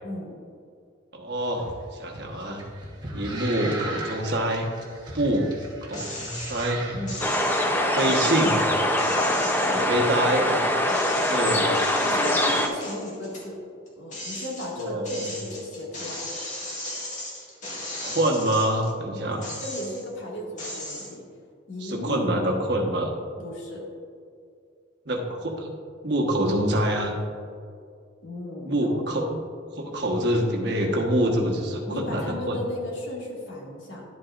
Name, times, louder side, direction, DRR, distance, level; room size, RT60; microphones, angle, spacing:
voice 1, 0.0-0.4 6.9-7.3 10.8-13.6 14.0-16.3 19.6-21.2 21.7-22.4 23.4-23.9 28.2-29.1 31.7-34.1, left 1 dB, 70° left, -3 dB, 2.0 m, -35 dB
voice 2, 1.1-2.6 3.1-4.7 5.1-5.5 5.8-6.8 7.9-8.6 9.7-10.6 11.3-11.6 14.8-15.2 18.0-19.5 21.8-23.1 25.1-25.7 26.0-27.1 28.6-29.4 29.8-32.6, right 1 dB, 55° right, 0 dB, 1.2 m, -25 dB
sound 1, 1.6-7.9, right 2 dB, 20° right, 1.1 m, -38 dB
sound 2, 5.9-6.7 7.1-10.5 10.9-13.5 13.9-18.9 19.3-20.2 20.6-21.1, left 1 dB, 35° left, 1.8 m, -36 dB
sound 3, 7.2-12.7, left 1 dB, 10° left, 0.5 m, -23 dB
11.0 x 8.3 x 2.5 m, 2.3 s
head